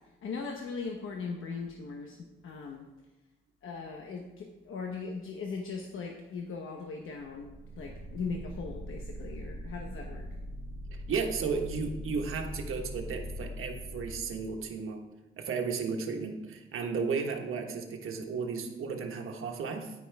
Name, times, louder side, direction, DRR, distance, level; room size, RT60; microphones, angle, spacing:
voice 1, 0.2-2.2 2.4-2.9 3.6-10.3, left 4 dB, 75° left, 2 dB, 1.0 m, -39 dB
sound 1, 7.2-14.8, equal, 5° right, 1.2 m, -42 dB
voice 2, 10.9-15.0 15.4-19.9, right 5 dB, 85° right, 3 dB, 1.3 m, -34 dB
9.9 x 9.5 x 3.5 m, 1.1 s
wide cardioid pair, 145°, 21 cm